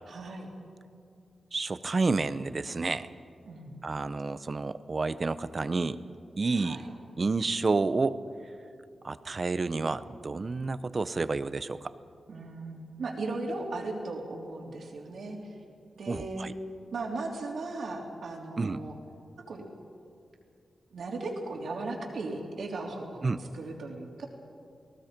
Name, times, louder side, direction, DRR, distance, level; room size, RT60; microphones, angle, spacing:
voice 1, 0.1-0.5 3.5-3.8 6.5-6.8 12.3-15.4 15.9-16.5 16.9-19.0 19.5-19.6 20.9-24.3, right 2 dB, 75° right, 0 dB, 3.4 m, -37 dB
voice 2, 1.5-3.1 3.8-6.0 6.4-6.8 7.2-8.2 9.0-11.9 16.1-16.5 18.6-18.8 23.2-23.4, right 3 dB, 40° right, 13 dB, 0.8 m, -30 dB
29.5 x 19.0 x 5.2 m, 2.4 s
cardioid pair, 75°, 0 cm